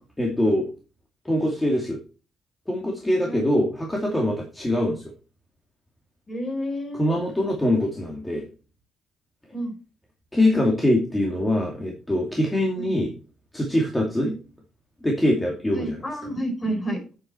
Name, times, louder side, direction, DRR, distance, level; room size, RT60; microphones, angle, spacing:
voice 1, 0.2-0.7 1.2-2.0 2.7-5.0 6.9-8.5 10.3-13.1 13.5-14.3 15.0-16.0, left 1 dB, 10° left, 0 dB, 2.5 m, -23 dB
voice 2, 6.3-7.2 9.5-9.7 12.7-12.9 14.2-14.4 15.7-17.0, right 1 dB, 30° left, 3 dB, 4.8 m, -30 dB
8.7 x 7.7 x 4.5 m, 0.34 s
cardioid pair, 90°, 0 cm